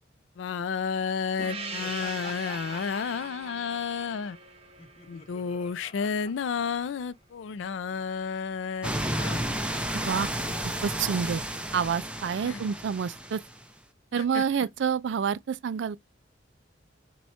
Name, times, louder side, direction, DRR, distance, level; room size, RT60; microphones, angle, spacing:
voice 1, 0.4-4.4 5.1-9.4 12.4-12.6 14.1-14.4, left 6 dB, 75° left, 0.4 m, -31 dB
Gong, 1.4-6.4, right 4 dB, 30° right, 0.8 m, -41 dB
Laughter, 1.8-7.2, left 3 dB, 30° left, 0.7 m, -48 dB
sound 1, 8.8-13.6, right 1 dB, 5° right, 0.5 m, -32 dB
voice 2, 9.9-10.3 10.8-11.4 11.7-13.4 14.1-16.0, right 7 dB, 70° right, 0.4 m, -28 dB
4.3 x 2.3 x 4.1 m
head